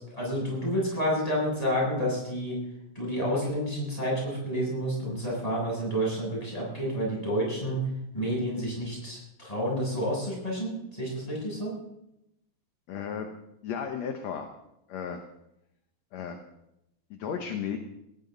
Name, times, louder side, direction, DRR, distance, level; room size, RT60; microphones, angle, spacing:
voice 1, 0.0-2.6 2.9-7.9 8.1-11.7, equal, 10° left, -4 dB, 7.9 m, -29 dB
voice 2, 12.9-13.3 13.6-14.5 14.9-15.2 16.1-16.4 17.1-17.8, left 7 dB, 60° left, 5 dB, 2.0 m, -34 dB
20.0 x 17.5 x 4.0 m, 0.84 s
omnidirectional pair, 4.2 m